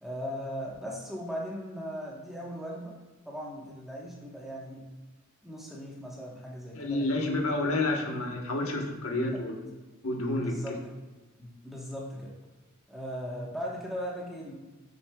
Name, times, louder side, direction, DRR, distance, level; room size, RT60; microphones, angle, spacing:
voice 1, 0.0-2.9 3.3-4.8 5.4-7.3 9.3-9.4 10.4-10.8 11.4-12.3 12.9-14.5, equal, ahead, -4 dB, 1.2 m, -38 dB
voice 2, 6.7-9.6 10.0-10.6, left 2 dB, 70° left, 1 dB, 1.1 m, -29 dB
8.0 x 7.0 x 2.3 m, 1.3 s
head